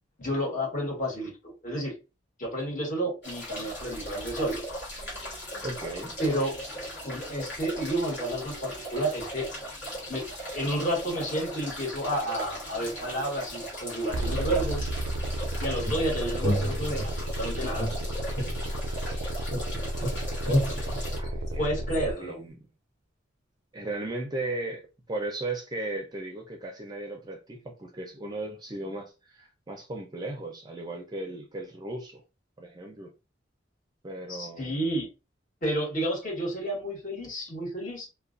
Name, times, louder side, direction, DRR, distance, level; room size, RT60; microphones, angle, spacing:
voice 1, 0.2-2.0 2.4-4.6 6.2-6.6 7.0-9.5 10.1-14.9 15.6-17.9 21.6-22.4 34.3-35.1 35.6-38.1, right 1 dB, 45° left, 1.3 m, -31 dB
sound 1, 3.2-21.2, equal, 65° left, 1.2 m, -38 dB
voice 2, 5.6-6.1 21.1-21.7 22.2-22.6 23.7-32.2 32.6-33.1 34.0-34.8, right 2 dB, 20° right, 0.4 m, -36 dB
sound 2, 14.1-22.1, right 1 dB, 80° right, 0.4 m, -32 dB
sound 3, 15.8-17.3 17.8-19.2 19.5-22.0, equal, 85° left, 1.2 m, -31 dB
2.3 x 2.2 x 2.4 m
head